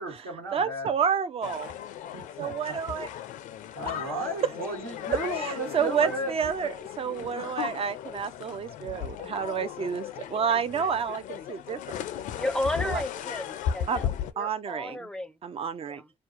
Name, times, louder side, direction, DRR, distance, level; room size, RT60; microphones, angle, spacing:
voice 1, 0.0-0.9 2.1-2.8 3.7-6.3, right 1 dB, 80° right, 1.5 m, -34 dB
voice 2, 0.5-1.7 2.4-3.1 5.3-12.0 12.8-13.0 13.9-14.0 14.4-15.0 15.4-16.0, right 7 dB, 45° right, 0.5 m, -30 dB
sound 1, 1.4-14.3, left 9 dB, 65° left, 0.4 m, -36 dB
voice 3, 12.3-15.4 15.9-16.1, left 1 dB, 5° left, 0.6 m, -33 dB
2.5 x 2.2 x 2.4 m
hypercardioid pair, 50°, 14 cm